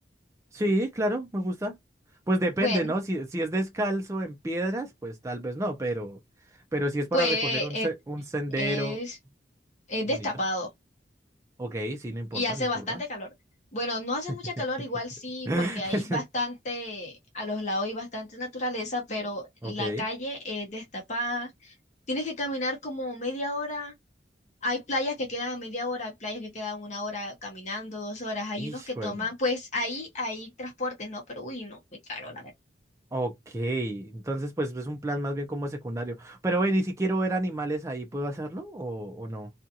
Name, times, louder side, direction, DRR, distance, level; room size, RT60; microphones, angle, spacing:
voice 1, 0.5-1.8 2.3-6.2 6.7-9.0 10.1-10.3 11.6-13.0 15.5-16.2 19.6-20.0 28.6-29.3 33.1-39.5, right 1 dB, 15° right, 0.4 m, -30 dB
voice 2, 2.6-2.9 7.1-7.9 8.6-9.2 9.9-10.7 12.3-13.3 13.7-21.7 22.1-23.9 24.6-31.8 32.1-32.5, left 1 dB, 40° left, 0.8 m, -32 dB
2.5 x 2.3 x 2.7 m
head